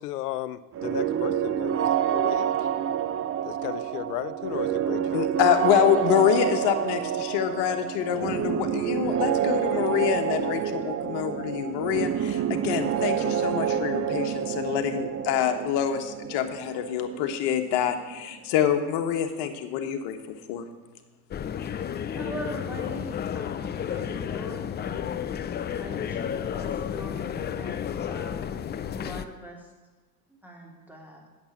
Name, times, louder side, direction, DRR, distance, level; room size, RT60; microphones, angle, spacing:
voice 1, 0.0-2.5 3.4-5.3, left 15 dB, 75° left, 16 dB, 0.7 m, -35 dB
sound 1, 0.7-18.4, right 9 dB, 30° right, 0.6 m, -28 dB
voice 2, 5.1-20.2 20.5-20.6, left 9 dB, 60° left, 6 dB, 1.4 m, -26 dB
sound 2, 21.3-29.3, left 8 dB, 25° left, 0.5 m, -32 dB
voice 3, 21.8-25.3 25.8-28.5 28.8-29.7 30.3-31.2, equal, 5° right, -1 dB, 3.0 m, -42 dB
8.7 x 7.3 x 7.3 m, 1.3 s
hypercardioid pair, 85°, 46 cm